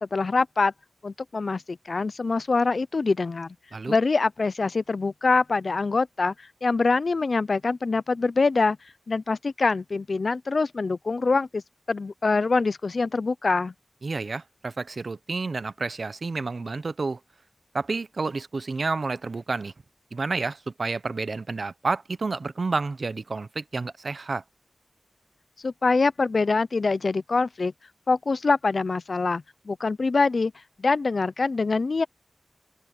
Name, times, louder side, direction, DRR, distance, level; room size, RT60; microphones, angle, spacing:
voice 1, 0.0-0.7 1.0-3.5 3.9-8.8 9.1-11.6 11.9-13.7 25.6-27.7 28.1-30.5 30.8-32.0, left 3 dB, 65° left, 0.5 m, -24 dB
voice 2, 14.0-17.2 17.7-19.7 20.1-24.4, right 3 dB, 65° right, 0.7 m, -30 dB
wide cardioid pair, 75°, 0 cm